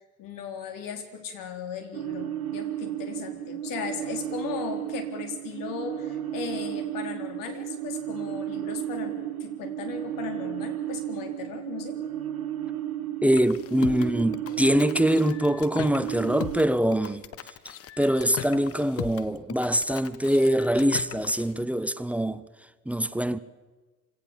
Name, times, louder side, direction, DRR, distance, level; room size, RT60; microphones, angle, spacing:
voice 1, 0.2-12.0, left 7 dB, 50° left, 4.1 m, -37 dB
sound 1, 1.9-16.7, right 11 dB, 75° right, 1.7 m, -33 dB
voice 2, 13.2-17.2 18.0-22.4 22.9-23.4, equal, 5° right, 0.7 m, -24 dB
sound 2, 13.3-21.5, left 10 dB, 30° left, 1.3 m, -39 dB
26.5 x 17.5 x 7.5 m
hypercardioid pair, 80°, 43 cm